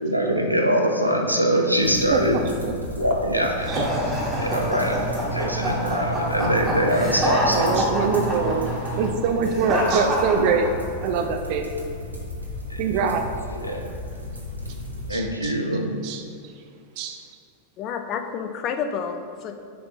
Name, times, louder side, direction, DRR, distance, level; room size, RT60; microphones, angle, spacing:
voice 1, 0.0-2.4 3.0-3.8 4.4-7.9 12.7-12.8 13.6-13.9 15.1-15.9, equal, 90° left, 2 dB, 0.6 m, -23 dB
sound 1, 1.8-15.1, left 1 dB, 90° right, 0.9 m, -35 dB
voice 2, 2.1-2.8 3.3-3.9 7.5-10.7 11.0-11.7 12.8-13.3 15.1-15.6 16.0-16.2 17.0-17.2, right 5 dB, 45° right, 5 dB, 0.4 m, -24 dB
sound 2, 3.6-9.0, right 1 dB, 60° left, 1.2 m, -32 dB
sound 3, 3.6-11.1, equal, 20° right, 1.4 m, -26 dB
voice 3, 17.8-19.6, left 6 dB, 35° left, 7 dB, 0.5 m, -29 dB
6.6 x 3.3 x 4.3 m, 2.2 s
figure-of-eight pair, 90°, 0 cm